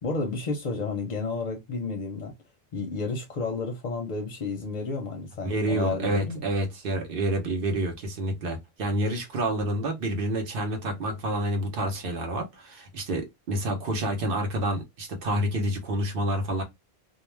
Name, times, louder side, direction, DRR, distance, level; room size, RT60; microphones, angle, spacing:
voice 1, 0.0-2.3 2.7-6.4, left 3 dB, 50° left, 0.6 m, -31 dB
voice 2, 5.4-16.6, right 1 dB, 60° right, 0.9 m, -28 dB
2.3 x 2.1 x 3.1 m
omnidirectional pair, 1.1 m